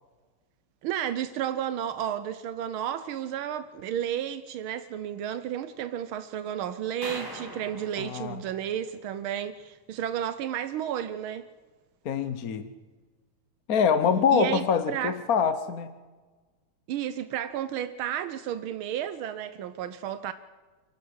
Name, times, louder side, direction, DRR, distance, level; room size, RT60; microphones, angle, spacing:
voice 1, 0.8-11.5 14.3-15.2 16.9-20.3, right 10 dB, 85° right, 1.7 m, -32 dB
sound 1, 7.0-9.3, right 1 dB, 10° right, 2.8 m, -42 dB
voice 2, 8.0-8.4 12.0-12.7 13.7-15.9, left 6 dB, 55° left, 1.3 m, -25 dB
28.0 x 12.0 x 8.1 m
omnidirectional pair, 2.2 m